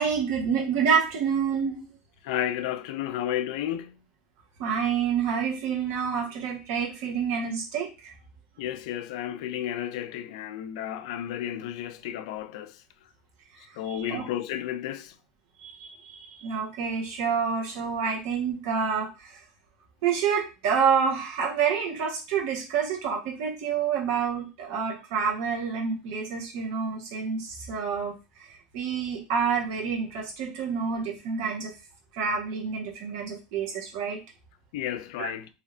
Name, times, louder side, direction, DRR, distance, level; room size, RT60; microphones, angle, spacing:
voice 1, 0.0-1.8 4.6-8.1 13.8-14.2 15.6-19.4 20.0-28.1 28.4-31.7 32.1-34.2 35.2-35.3, right 6 dB, 70° right, 1.2 m, -28 dB
voice 2, 2.2-4.0 8.6-12.7 13.8-15.1 34.7-35.5, left 11 dB, 80° left, 0.3 m, -32 dB
3.3 x 2.7 x 2.5 m
supercardioid pair, 115°, 3 cm